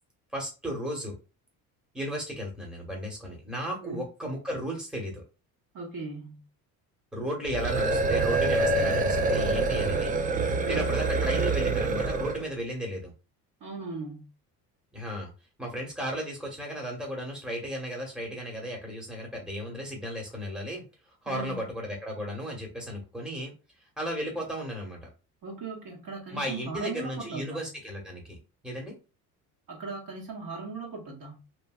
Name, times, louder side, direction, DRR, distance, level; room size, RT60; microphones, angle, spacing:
voice 1, 0.3-1.2 1.9-5.2 7.1-10.1 10.7-13.1 14.9-15.3 15.6-20.8 21.2-23.5 24.0-25.1 26.3-28.9, equal, ahead, 1.1 m, -34 dB
voice 2, 5.7-6.4 10.6-10.9 13.6-14.3 21.3-21.7 25.4-27.7 29.7-31.4, right 3 dB, 45° right, 1.4 m, -38 dB
sound 1, 7.4-12.5, right 3 dB, 20° right, 0.4 m, -26 dB
2.9 x 2.6 x 2.3 m
hypercardioid pair, 70°, 45 cm